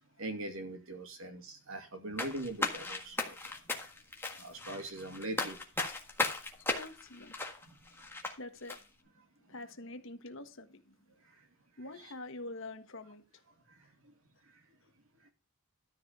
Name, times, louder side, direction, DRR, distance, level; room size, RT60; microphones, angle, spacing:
voice 1, 0.2-3.6 4.3-5.9 7.7-7.8 11.4-11.5 11.9-12.1 13.7-13.8 15.2-15.3, right 1 dB, 70° right, 2.6 m, -42 dB
sound 1, 2.2-8.3 8.7-8.8, left 2 dB, 10° left, 1.6 m, -36 dB
voice 2, 6.7-7.5 8.4-8.8 9.5-11.0 11.8-13.4, left 2 dB, 60° left, 1.4 m, -46 dB
13.0 x 4.9 x 6.7 m
head